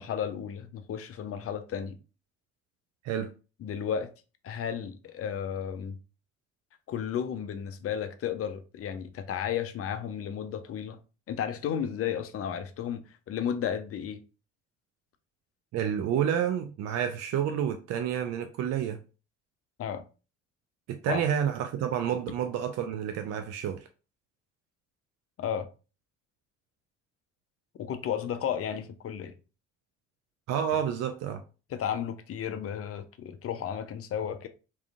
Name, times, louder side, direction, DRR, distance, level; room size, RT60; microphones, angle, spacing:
voice 1, 0.0-2.0 3.6-4.1 4.4-6.0 6.9-11.0 11.3-14.2 19.8-20.0 21.1-21.2 25.4-25.7 27.8-29.3 31.7-34.5, left 8 dB, 40° left, 0.5 m, -33 dB
voice 2, 15.7-19.0 20.9-23.9 30.5-31.4, right 9 dB, 45° right, 0.4 m, -29 dB
3.6 x 2.3 x 2.4 m
hypercardioid pair, 50°, 37 cm